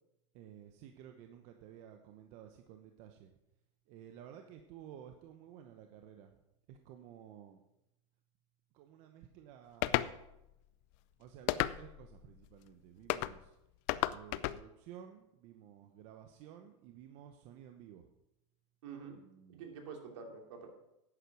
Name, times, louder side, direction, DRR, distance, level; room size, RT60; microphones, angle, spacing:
voice 1, 0.3-3.3 3.9-6.3 6.7-7.6 8.8-9.9 11.2-13.4 14.1-18.0 19.4-19.6, right 10 dB, 45° right, 5 dB, 0.9 m, -54 dB
sound 1, 9.8-10.1 11.5-12.0 13.1-13.3 13.9-14.6, left 16 dB, 45° left, 0.5 m, -32 dB
voice 2, 18.8-19.2 19.5-20.7, right 5 dB, 70° right, 3 dB, 2.8 m, -47 dB
11.0 x 8.4 x 6.1 m, 0.89 s
supercardioid pair, 155°, 16 cm